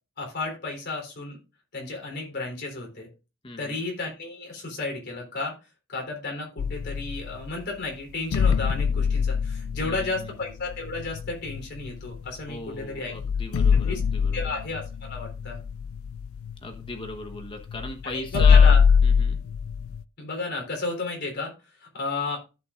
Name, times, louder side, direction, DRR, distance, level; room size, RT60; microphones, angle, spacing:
voice 1, 0.2-1.4 1.7-3.1 3.6-5.5 5.9-13.1 13.8-14.0 14.3-15.6 18.1-18.8 20.2-21.5 21.8-22.4, left 3 dB, 55° left, 1 dB, 3.6 m, -33 dB
voice 2, 3.4-3.8 9.8-10.1 12.5-14.5 16.6-18.8 19.0-19.4, left 3 dB, 25° left, 4 dB, 1.1 m, -37 dB
sound 1, 6.6-7.5 8.3-12.3 12.8-12.9 13.1-20.0, left 6 dB, 90° left, 0.4 m, -23 dB
14.5 x 5.9 x 2.5 m, 0.31 s
head